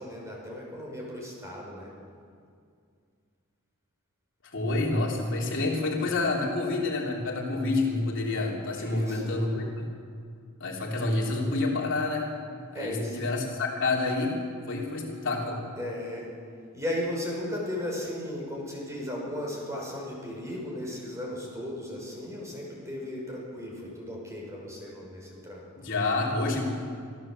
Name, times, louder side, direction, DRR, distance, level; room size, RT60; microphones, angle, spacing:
voice 1, 0.0-1.9 8.7-9.3 12.7-13.2 15.8-16.3 16.7-25.6, left 1 dB, 15° right, -2 dB, 5.7 m, -36 dB
voice 2, 4.5-9.9 10.6-12.3 12.7-14.4 14.7-15.6 25.8-26.6, left 2 dB, 55° left, -2 dB, 3.4 m, -28 dB
26.0 x 14.0 x 7.7 m, 2.2 s
head